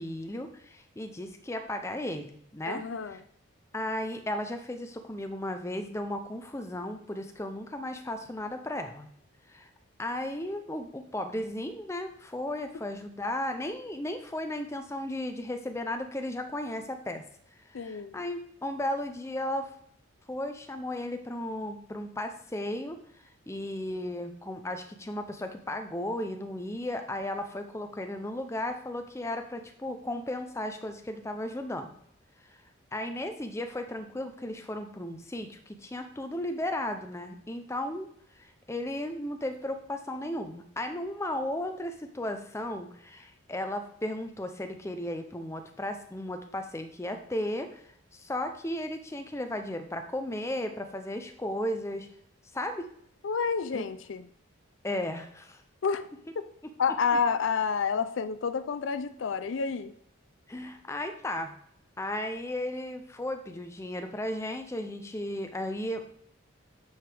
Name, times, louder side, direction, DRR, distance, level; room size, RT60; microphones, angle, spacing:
voice 1, 0.0-2.8 3.1-3.2 3.7-9.1 9.5-9.7 10.0-17.2 17.6-19.7 20.3-23.0 23.5-31.9 32.9-38.1 38.4-47.8 48.1-52.1 52.5-52.9 53.7-53.8 54.8-55.6 57.1-57.2 60.5-61.5 62.0-66.1, left 1 dB, 15° left, 6 dB, 0.5 m, -35 dB
voice 2, 2.7-3.2 17.7-18.2 53.2-54.3 55.8-56.1 56.8-59.9, left 5 dB, 65° left, 11 dB, 0.4 m, -29 dB
9.4 x 4.7 x 3.4 m, 0.71 s
head